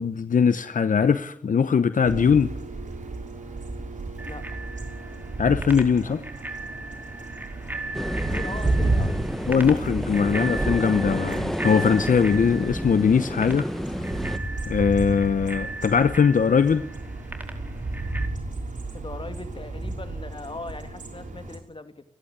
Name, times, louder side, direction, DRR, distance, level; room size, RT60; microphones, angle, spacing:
voice 1, 0.0-2.5 5.4-6.2 9.5-13.7 14.7-16.8, left 6 dB, 80° left, 12 dB, 0.9 m, -21 dB
sound 1, 2.0-21.6, right 2 dB, 70° right, 6.0 m, -32 dB
voice 2, 4.2-4.6 6.0-6.2 8.2-9.1 18.9-22.0, left 3 dB, 40° left, 8 dB, 3.0 m, -39 dB
Bicycle bell, 4.2-18.3, right 2 dB, 15° right, 4.8 m, -38 dB
sound 2, 7.9-14.4, equal, ahead, 1.6 m, -31 dB
29.5 x 11.5 x 9.7 m, 0.71 s
cardioid pair, 55°, 13 cm